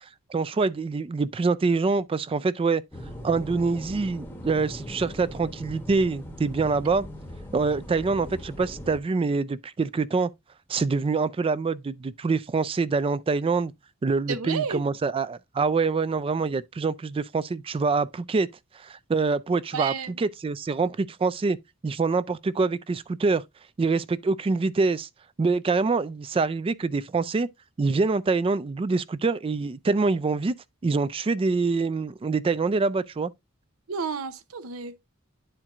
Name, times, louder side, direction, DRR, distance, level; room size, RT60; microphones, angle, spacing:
voice 1, 0.3-2.8 3.2-7.0 7.5-10.3 10.7-13.7 14.0-18.5 18.8-21.6 21.8-23.4 23.8-25.1 25.4-27.5 27.8-30.5 30.8-33.3, right 4 dB, 25° right, 0.3 m, -25 dB
sound 1, 2.9-9.0, equal, 10° left, 0.9 m, -40 dB
voice 2, 14.3-14.8 19.7-20.1 33.9-34.9, right 5 dB, 85° right, 0.7 m, -31 dB
11.0 x 4.5 x 2.4 m
head